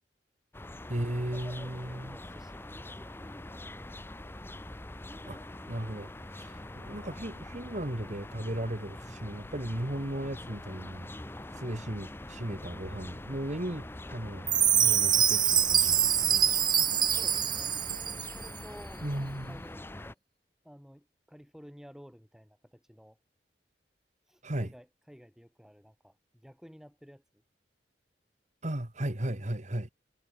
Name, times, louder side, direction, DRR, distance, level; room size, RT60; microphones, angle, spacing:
sound 1, 0.5-20.1, left 1 dB, 15° left, 0.7 m, -44 dB
voice 1, 0.9-2.2 5.3-5.4 5.7-11.1 11.5-16.4 19.0-19.6 24.4-24.7 28.6-29.9, right 1 dB, 40° right, 2.1 m, -36 dB
voice 2, 1.8-3.3 3.6-3.8 11.4-11.6 16.8-17.8 18.3-19.1 19.5-20.2 20.6-23.2 24.2-27.2, equal, 5° right, 6.9 m, -53 dB
Chime, 14.5-18.5, right 9 dB, 25° right, 0.6 m, -25 dB
head